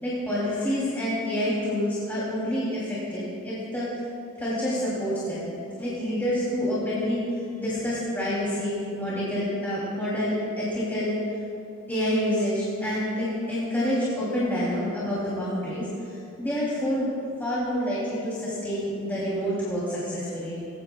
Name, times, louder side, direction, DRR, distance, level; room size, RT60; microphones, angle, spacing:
voice 1, 0.0-3.9 4.4-5.5 5.8-7.2 7.6-11.2 11.9-15.8 16.4-17.1 17.4-20.6, equal, 10° left, -10 dB, 2.9 m, -27 dB
19.0 x 15.5 x 2.3 m, 2.6 s
head